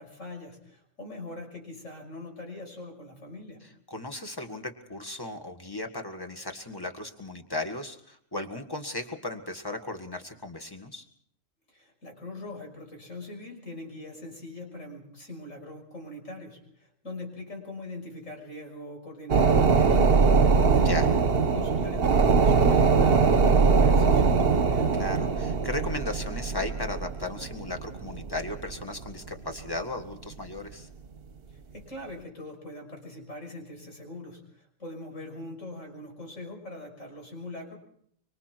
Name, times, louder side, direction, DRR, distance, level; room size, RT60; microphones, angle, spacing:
voice 1, 0.0-3.6 11.7-20.8 21.5-25.0 31.5-37.7, left 2 dB, 75° left, 2 dB, 6.3 m, -42 dB
voice 2, 3.9-11.1 20.8-21.1 24.9-30.9, left 2 dB, 15° left, 6 dB, 1.9 m, -36 dB
sound 1, 19.3-29.3 29.7-29.8, right 5 dB, 50° right, 1.2 m, -22 dB
25.5 x 25.0 x 4.6 m, 0.68 s
omnidirectional pair, 1.3 m